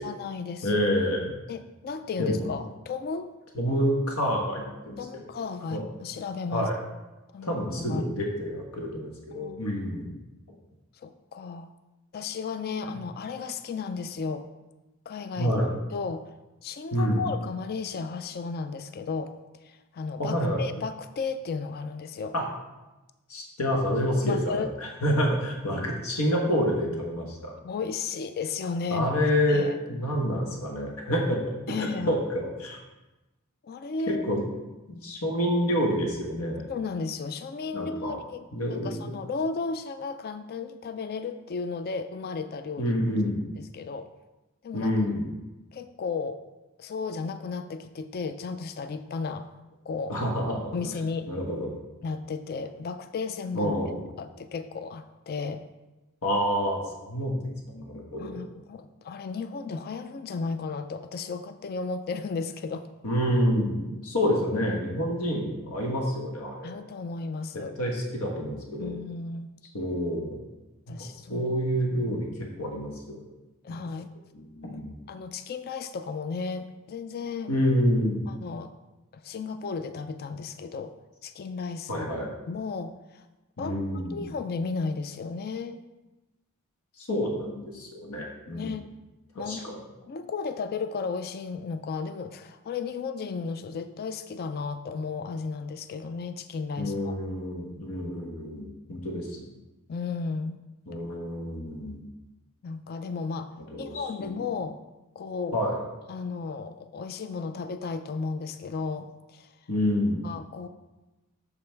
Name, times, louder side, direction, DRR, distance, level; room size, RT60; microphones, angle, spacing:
voice 1, 0.0-0.8 1.5-3.3 5.0-6.7 7.3-8.1 9.3-9.8 11.0-11.7 12.1-14.4 15.1-15.6 15.9-16.2 16.6-19.3 19.6-22.3 24.2-24.7 27.6-29.1 29.5-29.8 31.7-32.2 33.6-34.2 36.7-43.0 43.6-44.1 44.6-44.9 45.7-46.4 46.8-49.5 49.9-50.2 50.7-51.3 52.0-53.7 54.2-55.6 58.2-62.9 66.6-67.8 68.8-69.5 70.9-71.5 71.9-72.1 73.6-74.1 74.6-74.8 75.1-77.5 78.3-78.7 79.1-80.9 81.2-82.1 82.5-83.3 83.6-85.8 88.5-88.9 89.4-89.7 90.1-97.2 99.9-100.6 102.6-104.8 105.2-105.6 106.1-109.5 110.2-110.7, left 4 dB, 45° left, 10 dB, 0.4 m, -34 dB
voice 2, 0.6-1.3 2.2-2.5 3.5-5.0 5.7-5.8 6.5-6.8 7.4-10.1 15.4-15.7 16.9-17.2 20.2-20.6 22.3-22.4 23.3-27.5 28.9-32.8 34.3-34.4 34.9-36.6 37.7-38.2 38.5-38.9 42.8-43.4 44.7-45.3 50.1-50.7 51.3-51.7 53.5-53.9 56.2-58.4 63.0-66.7 67.8-68.9 69.7-70.4 71.0-72.3 72.6-73.2 74.5-75.0 77.5-78.3 81.9-82.3 83.6-84.2 87.0-88.7 89.5-89.8 96.8-99.5 100.9-102.0 103.7-104.4 105.5-105.8 109.7-110.3, equal, 85° left, 0 dB, 1.3 m, -28 dB
6.8 x 5.4 x 4.5 m, 1.1 s
head